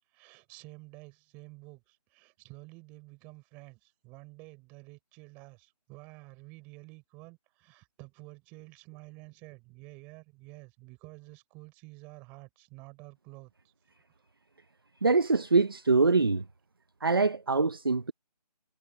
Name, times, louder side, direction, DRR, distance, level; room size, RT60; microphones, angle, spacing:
voice 1, 0.1-13.7, right 25 dB, 5° right, 5.7 m, -50 dB
voice 2, 15.0-16.5 17.0-18.1, right 3 dB, 35° right, 0.9 m, -24 dB
figure-of-eight pair, 180°, 21 cm